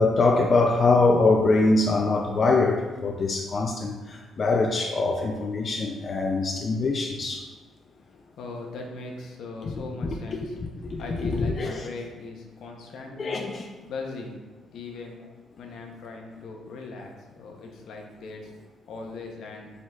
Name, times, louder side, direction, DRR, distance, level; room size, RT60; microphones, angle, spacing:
voice 1, 0.0-7.5 9.6-9.7 10.0-10.2 10.8-11.9 13.2-13.6, left 3 dB, 45° left, 1 dB, 0.4 m, -23 dB
voice 2, 8.1-10.6 11.0-13.5 13.8-14.4 14.7-15.2 15.6-18.5 18.9-19.7, left 3 dB, 75° left, 1 dB, 0.7 m, -39 dB
4.3 x 3.9 x 2.3 m, 1.3 s
cardioid pair, 90°, 0 cm